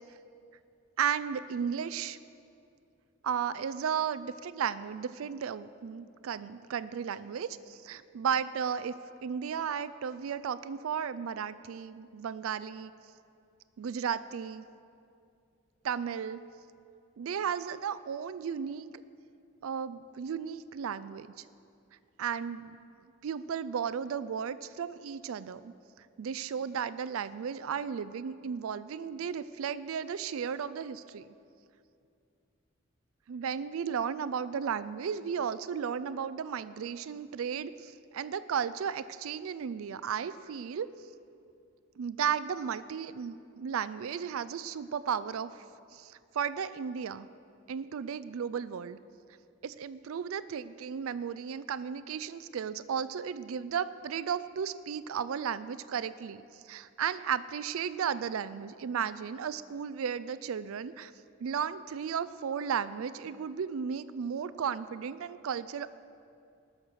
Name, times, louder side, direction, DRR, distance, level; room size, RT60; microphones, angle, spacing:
voice 1, 1.0-2.2 3.2-12.9 13.8-14.6 15.8-16.4 17.2-18.9 19.6-21.4 22.2-22.8 23.2-31.3 33.3-40.9 42.0-45.6 45.9-47.3 47.7-49.0 49.6-61.1 61.4-65.9, right 7 dB, 85° right, 15 dB, 0.4 m, -34 dB
19.5 x 6.5 x 6.3 m, 2.5 s
head